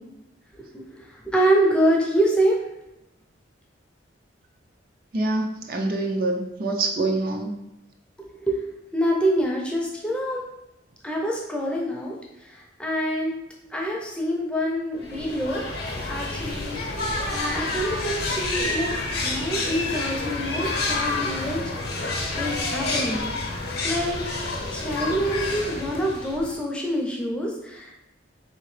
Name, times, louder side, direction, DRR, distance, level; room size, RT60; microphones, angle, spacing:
voice 1, 0.5-2.6 8.2-8.6 8.9-10.4 11.0-12.1 12.4-13.4 13.7-15.6 16.1-18.9 19.2-23.3 23.8-24.2 24.7-27.9, right 1 dB, 5° left, -2 dB, 0.5 m, -26 dB
voice 2, 5.1-7.5, right 2 dB, 50° right, 2 dB, 0.4 m, -25 dB
sound 1, 15.0-26.6, left 2 dB, 55° left, 0.7 m, -29 dB
3.7 x 2.8 x 3.2 m, 0.89 s
head